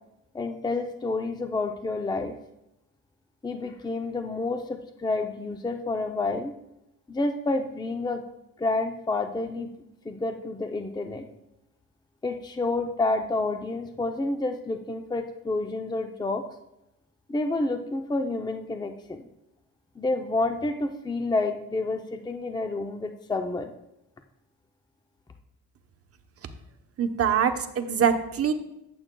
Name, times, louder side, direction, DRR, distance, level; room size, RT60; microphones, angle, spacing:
voice 1, 0.3-2.4 3.4-6.5 7.1-8.3 8.6-9.7 10.0-11.3 12.2-16.4 17.3-19.3 20.0-23.7, left 2 dB, 15° left, 6 dB, 0.6 m, -29 dB
voice 2, 27.0-28.5, right 7 dB, 50° right, 7 dB, 1.0 m, -24 dB
14.0 x 7.7 x 2.3 m, 0.86 s
cardioid pair, 90°, 30 cm